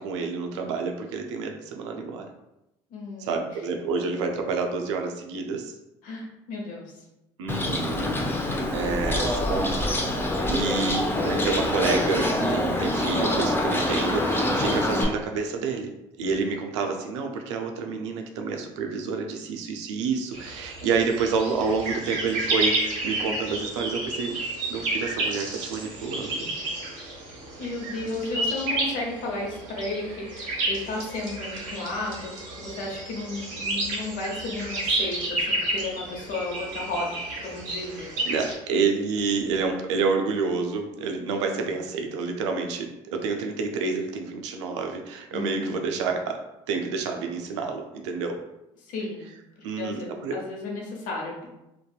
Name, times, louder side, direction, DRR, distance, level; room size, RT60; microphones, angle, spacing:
voice 1, 0.0-2.3 3.2-5.7 7.4-8.1 8.7-9.7 10.5-15.9 16.2-24.4 24.7-26.5 38.3-46.4 46.7-48.4 49.6-50.4, right 4 dB, 85° right, 3 dB, 0.4 m, -28 dB
voice 2, 2.9-3.6 6.0-6.8 27.6-38.3 41.3-41.8 45.3-45.9 48.9-49.4 49.8-51.5, left 2 dB, 65° left, -1 dB, 0.9 m, -34 dB
Bird, 7.5-15.0, left 1 dB, 15° left, 0.5 m, -25 dB
sound 1, 20.3-38.5, right 2 dB, 65° right, 0.8 m, -31 dB
2.6 x 2.3 x 2.3 m, 0.91 s
hypercardioid pair, 65°, 15 cm